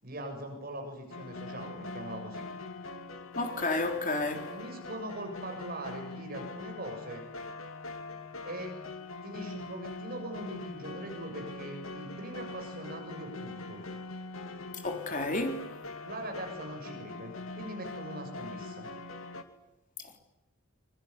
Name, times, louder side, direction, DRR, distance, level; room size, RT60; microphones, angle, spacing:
voice 1, 0.0-2.5 4.5-7.2 8.4-8.7 9.2-13.8 16.0-18.9, right 1 dB, 45° right, 7.5 m, -41 dB
sound 1, 1.1-19.4, left 2 dB, 85° left, 2.6 m, -42 dB
voice 2, 3.4-4.5 14.8-15.7 20.0-20.2, left 2 dB, 40° left, 3.8 m, -31 dB
25.0 x 24.5 x 9.8 m
head